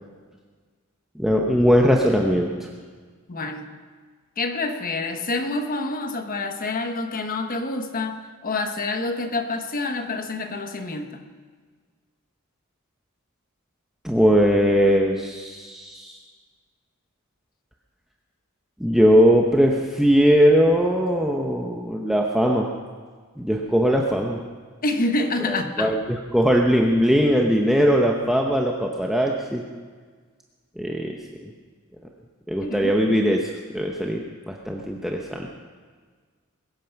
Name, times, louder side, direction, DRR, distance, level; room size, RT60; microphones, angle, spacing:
voice 1, 1.2-2.5 14.0-16.2 18.8-22.7 23.4-24.4 25.5-26.0 26.3-29.6 30.8-31.2 32.5-33.5 33.7-35.5, equal, ahead, 0 dB, 0.9 m, -20 dB
voice 2, 3.3-3.7 4.4-11.3 24.8-26.0 32.6-32.9, left 2 dB, 40° left, 6 dB, 1.2 m, -27 dB
21.5 x 9.1 x 5.9 m, 1.5 s
head